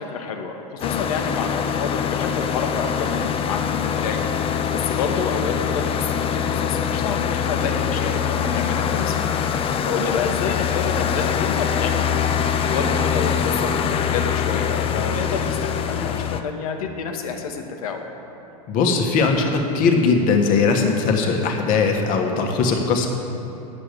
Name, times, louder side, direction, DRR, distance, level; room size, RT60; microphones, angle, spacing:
voice 1, 0.0-9.3 9.8-12.3 12.6-18.0, left 5 dB, 75° left, 4 dB, 1.2 m, -28 dB
sound 1, 0.8-16.4, left 8 dB, 30° left, 0.6 m, -23 dB
voice 2, 18.7-23.1, left 4 dB, 45° left, 3 dB, 1.5 m, -19 dB
8.9 x 7.6 x 6.7 m, 2.9 s
hypercardioid pair, 105°, 19 cm